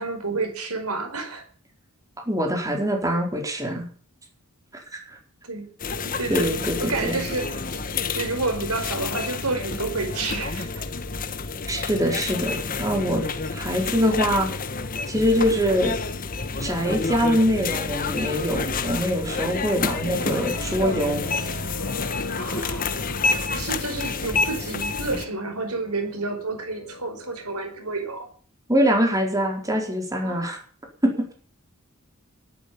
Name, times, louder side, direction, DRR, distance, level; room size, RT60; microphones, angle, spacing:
voice 1, 0.0-1.4 5.4-5.7 6.0-7.8 8.1-10.8 22.4-22.9 23.5-28.3 30.2-30.5, right 3 dB, 90° right, 6 dB, 4.8 m, -30 dB
voice 2, 2.3-3.9 4.9-5.2 6.3-7.2 11.7-13.2 13.5-14.5 15.1-16.0 16.6-21.2 28.7-30.6 31.0-31.3, equal, 15° right, 2 dB, 4.5 m, -23 dB
sound 1, 5.8-25.3, left 4 dB, 40° left, 1.3 m, -29 dB
sound 2, 20.1-28.1, left 2 dB, 85° left, 2.8 m, -38 dB
12.5 x 12.0 x 7.2 m, 0.43 s
head